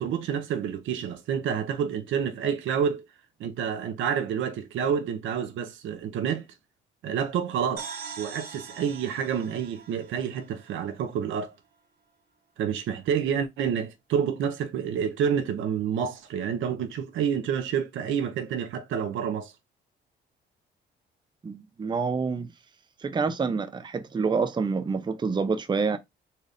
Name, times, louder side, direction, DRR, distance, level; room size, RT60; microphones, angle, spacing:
voice 1, 0.0-3.0 3.4-6.5 7.0-7.9 8.2-11.5 12.6-19.5, right 8 dB, 80° right, 0.7 m, -28 dB
sound 1, 7.8-11.4, right 6 dB, 55° right, 1.0 m, -43 dB
voice 2, 21.4-22.5 23.0-26.0, right 5 dB, 25° right, 0.5 m, -27 dB
4.1 x 2.5 x 3.4 m
cardioid pair, 90°, 20 cm